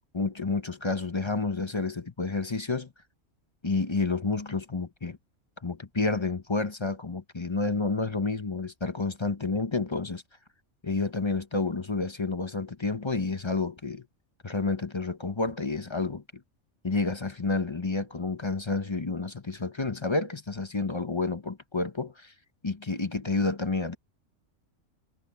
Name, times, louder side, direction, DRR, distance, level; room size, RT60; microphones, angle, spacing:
voice 1, 0.1-2.9 3.6-5.2 5.6-10.2 10.8-14.0 14.4-16.2 16.8-22.3 22.6-23.9, left 3 dB, 25° left, 0.8 m, -30 dB
omnidirectional pair, 1.3 m